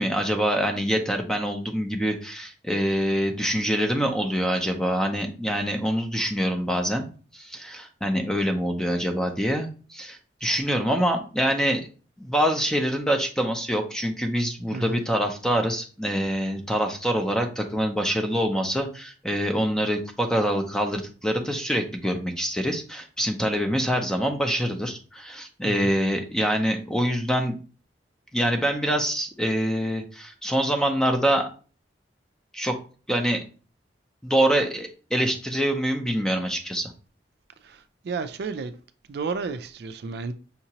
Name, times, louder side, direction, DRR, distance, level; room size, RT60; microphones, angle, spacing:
voice 1, 0.0-7.1 7.3-11.8 12.2-27.6 28.3-31.5 32.5-32.7 33.1-33.4 34.2-36.9, equal, 5° left, 0.5 m, -25 dB
voice 2, 14.7-15.0 25.6-25.9 37.6-38.7 39.1-40.3, right 4 dB, 60° right, 0.4 m, -32 dB
5.7 x 2.8 x 2.8 m
head